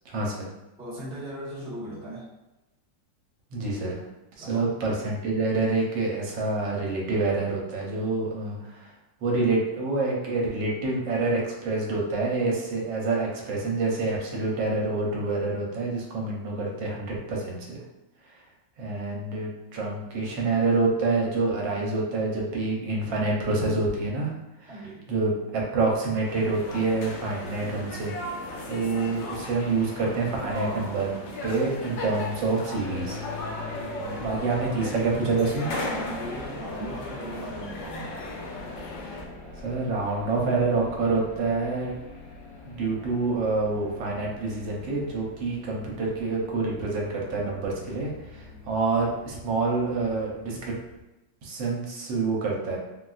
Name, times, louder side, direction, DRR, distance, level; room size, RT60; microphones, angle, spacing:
voice 1, 0.1-0.5 3.5-4.0 4.4-8.9 9.2-17.8 18.8-24.3 24.6-24.7 25.1-28.1 28.7-31.1 31.4-33.2 34.2-35.7 39.6-41.9 42.7-50.7 51.4-52.8, right 3 dB, 80° right, -2 dB, 1.4 m, -27 dB
voice 2, 0.8-2.3 4.4-4.7 24.7-25.0 35.9-38.1, right 1 dB, 5° right, -9 dB, 0.5 m, -38 dB
sound 1, 26.2-39.2, left 2 dB, 90° left, 1.4 m, -36 dB
sound 2, 32.8-51.0, left 3 dB, 70° left, 0.9 m, -44 dB
3.8 x 2.3 x 2.3 m, 0.99 s
omnidirectional pair, 2.0 m